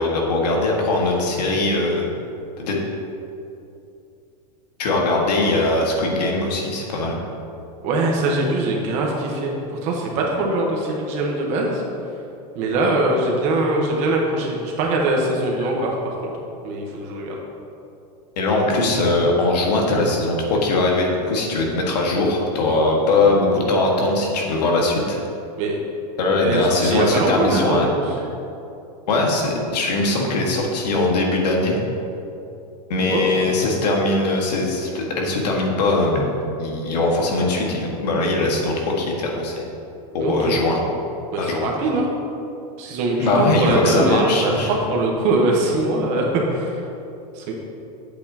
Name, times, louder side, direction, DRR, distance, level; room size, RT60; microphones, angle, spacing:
voice 1, 0.0-2.1 2.6-2.8 4.8-7.2 18.4-25.2 26.2-28.1 29.1-31.8 32.9-39.6 40.1-40.8 41.4-41.7 43.2-44.7, left 2 dB, 85° left, -1 dB, 1.7 m, -20 dB
voice 2, 7.8-9.5 9.8-11.8 12.5-16.3 16.6-17.3 25.6-25.8 26.4-27.8 33.1-33.5 40.2-40.6 41.3-42.1 42.8-46.8 47.3-47.5, right 2 dB, 35° right, -1 dB, 1.2 m, -22 dB
8.7 x 8.1 x 2.9 m, 2.7 s
supercardioid pair, 170°, 21 cm